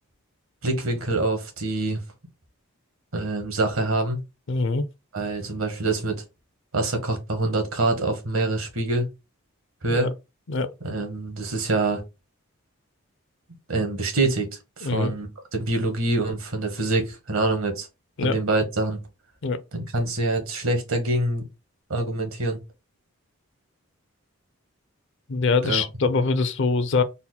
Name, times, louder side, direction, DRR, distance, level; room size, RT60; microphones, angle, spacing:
voice 1, 0.6-2.0 3.1-4.2 5.1-6.2 6.7-9.1 9.8-10.1 10.8-12.0 13.7-14.5 14.8-17.9 18.2-19.0 19.7-21.4 21.9-22.6 25.6-25.8, right 2 dB, 70° right, 1.4 m, -25 dB
voice 2, 4.5-4.8 9.9-10.0 10.5-10.7 14.8-15.1 18.2-18.4 19.4-19.6 25.3-27.0, left 4 dB, 60° left, 0.5 m, -23 dB
4.2 x 2.1 x 4.0 m
head